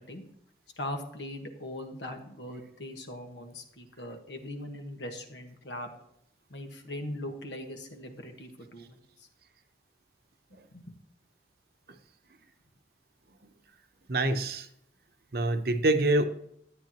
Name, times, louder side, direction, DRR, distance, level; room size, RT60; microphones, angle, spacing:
voice 1, 0.8-5.9 6.5-9.3 10.5-10.9, left 1 dB, 80° left, 5 dB, 1.5 m, -40 dB
voice 2, 14.1-14.7 15.3-16.2, right 2 dB, 55° right, 8 dB, 0.8 m, -26 dB
13.0 x 9.2 x 3.0 m, 0.72 s
head